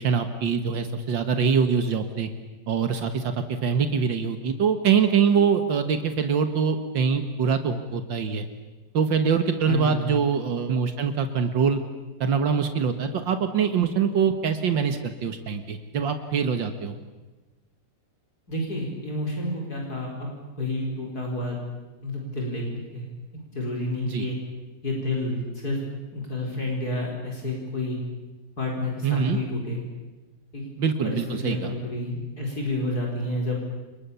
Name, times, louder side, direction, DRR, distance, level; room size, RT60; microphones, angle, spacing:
voice 1, 0.0-2.3 2.7-8.4 8.9-11.8 12.2-17.0 24.0-24.3 29.0-29.4 30.8-31.7, right 6 dB, 80° right, 8 dB, 2.2 m, -24 dB
voice 2, 9.7-10.0 18.5-20.3 20.6-21.6 22.0-23.1 23.3-24.4 24.8-25.8 26.1-28.0 28.6-29.8 30.5-30.7 31.0-33.5, left 1 dB, 55° left, -1 dB, 5.0 m, -29 dB
30.0 x 27.5 x 7.0 m, 1.2 s
omnidirectional pair, 2.0 m